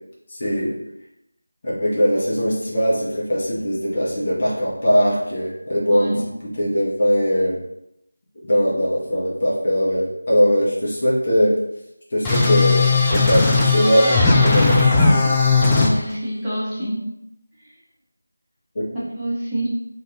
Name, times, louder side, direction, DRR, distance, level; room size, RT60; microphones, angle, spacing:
voice 1, 0.3-0.8 1.6-7.6 8.4-11.6 12.1-12.8 13.1-14.9 15.2-15.3 18.7-18.9, equal, 35° left, -6 dB, 0.7 m, -20 dB
voice 2, 5.9-6.2 15.6-17.0 18.9-19.8, equal, 5° right, -14 dB, 0.8 m, -26 dB
sound 1, 12.2-15.9, left 3 dB, 10° left, 0.3 m, -17 dB
2.6 x 2.3 x 3.7 m, 0.85 s
figure-of-eight pair, 165°, 0 cm